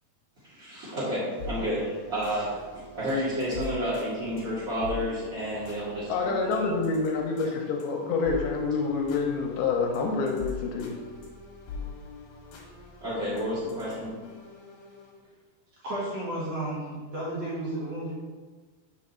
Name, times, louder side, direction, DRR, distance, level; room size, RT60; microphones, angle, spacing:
voice 1, 0.5-2.5 2.9-6.7 13.0-14.1, equal, 25° right, -11 dB, 1.9 m, -30 dB
sound 1, 1.4-15.2, left 4 dB, 60° left, 2.0 m, -43 dB
voice 2, 6.1-10.9, left 4 dB, 75° left, 1 dB, 2.5 m, -27 dB
voice 3, 15.8-18.1, right 1 dB, 50° right, -7 dB, 2.3 m, -33 dB
7.0 x 6.2 x 4.3 m, 1.4 s
omnidirectional pair, 4.9 m